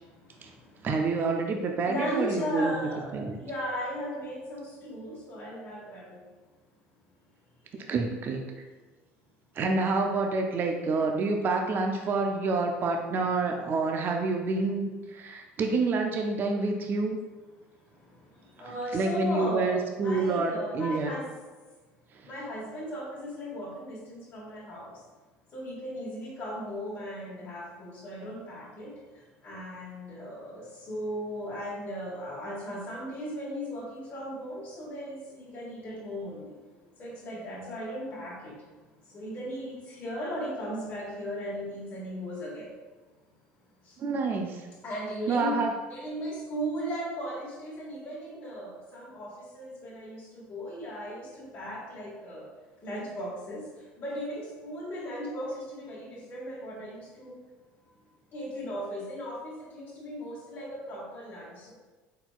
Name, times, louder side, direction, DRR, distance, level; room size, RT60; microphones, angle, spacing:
voice 1, 0.8-2.7 3.1-3.4 7.9-8.4 9.6-17.2 18.9-21.1 44.0-44.6 45.3-45.7, right 3 dB, 40° right, 3 dB, 0.5 m, -28 dB
voice 2, 1.8-6.0 18.6-21.3 22.3-24.9 25.5-28.9 29.4-36.4 37.0-38.5 39.1-42.6 44.8-45.6 45.9-49.3 49.5-52.4 52.8-53.6 54.0-55.5 55.8-57.3 58.3-61.7, equal, 40° left, -9 dB, 1.4 m, -36 dB
4.3 x 4.0 x 2.3 m, 1.3 s
supercardioid pair, 85°, 5 cm